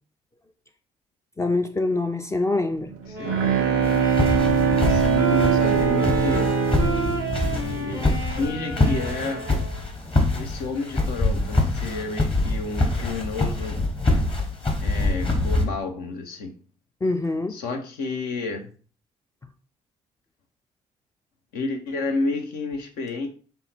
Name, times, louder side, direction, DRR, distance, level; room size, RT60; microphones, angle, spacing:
voice 1, 1.4-2.9 17.0-17.6, left 2 dB, 20° left, 0.4 m, -24 dB
Bowed string instrument, 2.9-8.4, right 6 dB, 80° right, 0.6 m, -22 dB
sound 1, 3.1-9.9, right 2 dB, 85° left, 1.4 m, -32 dB
voice 2, 3.1-3.5 4.9-6.6 7.4-9.5 10.3-13.8 14.8-16.5 17.5-18.7 21.5-23.3, left 3 dB, 70° left, 0.7 m, -31 dB
sound 2, 3.8-15.6, left 2 dB, 35° left, 1.3 m, -25 dB
5.3 x 2.2 x 4.1 m
hypercardioid pair, 50°, 16 cm